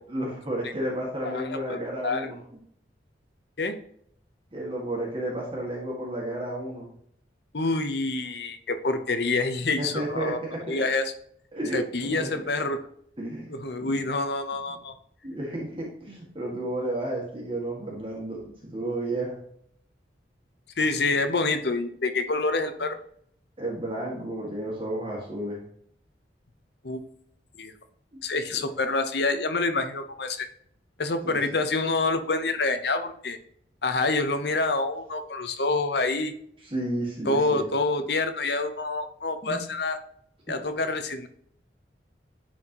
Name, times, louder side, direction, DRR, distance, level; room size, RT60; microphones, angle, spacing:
voice 1, 0.1-2.4 4.5-6.9 9.8-10.8 11.5-12.3 13.2-13.5 13.8-14.0 15.2-19.4 23.6-25.6 28.1-28.2 28.5-28.6 31.2-31.4 36.6-37.6 39.4-39.6, right 1 dB, 30° right, -3 dB, 1.9 m, -32 dB
voice 2, 1.2-1.8 2.0-2.3 3.6-3.8 7.5-10.4 10.7-11.0 11.7-12.8 13.5-14.9 20.8-23.0 26.8-27.0 27.6-27.7 28.2-30.5 31.0-33.4 33.8-36.3 37.2-40.0 40.5-41.3, left 3 dB, 60° left, 8 dB, 0.9 m, -27 dB
10.5 x 4.5 x 2.9 m, 0.65 s
head